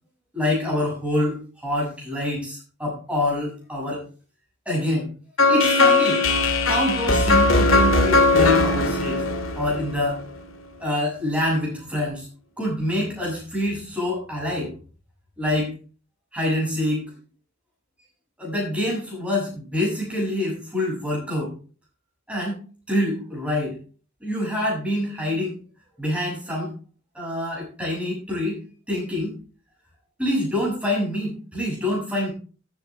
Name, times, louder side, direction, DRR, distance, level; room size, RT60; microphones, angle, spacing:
voice 1, 0.3-4.0 4.7-5.1 5.5-6.2 6.6-9.2 9.5-10.2 10.8-12.3 12.6-14.7 15.4-15.7 16.3-17.1 18.4-21.5 22.3-22.6 22.9-23.8 24.2-25.6 26.0-26.7 27.1-28.6 28.9-29.3 30.2-32.3, left 1 dB, 5° right, -4 dB, 7.2 m, -26 dB
sound 1, 5.4-10.4, left 2 dB, 90° left, 2.0 m, -19 dB
14.0 x 8.8 x 3.5 m, 0.37 s
head